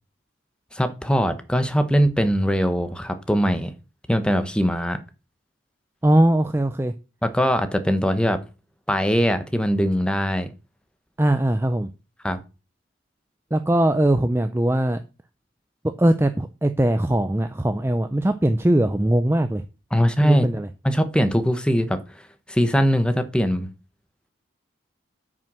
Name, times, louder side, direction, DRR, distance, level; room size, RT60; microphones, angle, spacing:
voice 1, 0.7-3.7 4.1-5.0 7.2-8.4 8.9-10.5 12.2-12.4 19.9-20.5 20.8-22.0 22.5-23.7, equal, 5° left, 1.0 m, -21 dB
voice 2, 6.0-6.9 11.2-11.9 13.5-15.0 16.0-19.6 20.2-20.7, right 1 dB, 10° right, 0.4 m, -20 dB
8.9 x 6.2 x 6.1 m
head